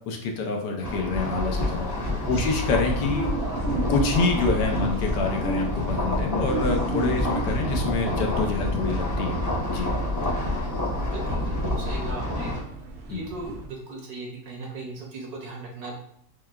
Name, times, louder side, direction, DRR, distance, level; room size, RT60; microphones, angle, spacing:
voice 1, 0.1-3.2 3.9-9.4 9.7-9.9 13.1-13.2, left 4 dB, 75° left, 2 dB, 1.3 m, -27 dB
sound 1, 0.8-12.6, left 1 dB, 20° left, 0.5 m, -29 dB
sound 2, 1.5-12.1, left 2 dB, 55° left, 0.7 m, -34 dB
sound 3, 2.6-13.7, right 3 dB, 85° right, 0.6 m, -35 dB
voice 2, 11.0-12.5 13.1-15.9, right 2 dB, 65° right, 0 dB, 1.1 m, -37 dB
6.3 x 2.2 x 2.3 m, 0.70 s
omnidirectional pair, 1.9 m